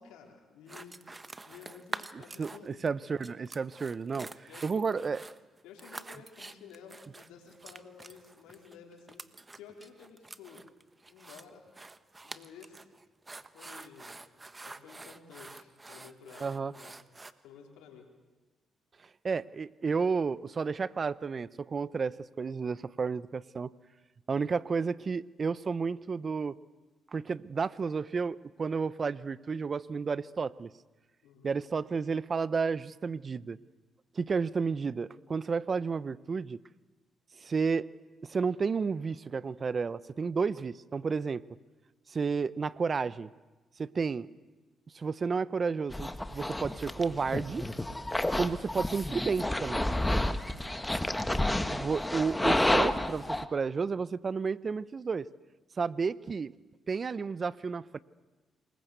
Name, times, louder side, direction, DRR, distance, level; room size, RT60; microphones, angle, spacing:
voice 1, 0.0-3.0 4.5-4.9 5.6-9.2 9.6-10.6 11.1-11.7 12.2-12.9 13.5-14.2 14.6-16.9 17.4-18.1 31.2-31.5 50.4-50.8, left 6 dB, 90° left, 2 dB, 4.4 m, -52 dB
sound 1, 0.7-2.9 3.2-17.3, right 2 dB, 25° right, 1.3 m, -47 dB
voice 2, 2.4-5.2 16.4-16.7 19.2-23.7 24.3-26.5 27.1-30.7 31.4-33.6 34.1-36.6 37.4-37.9 38.2-41.4 42.1-43.3 43.8-44.3 44.9-47.7 48.4-49.9 51.2-55.3 55.8-56.5 56.9-58.0, right 5 dB, 45° right, 18 dB, 0.9 m, -32 dB
sound 2, 45.9-53.4, left 1 dB, 10° left, 1.7 m, -30 dB
27.0 x 22.0 x 8.2 m, 1.2 s
supercardioid pair, 60°, 0 cm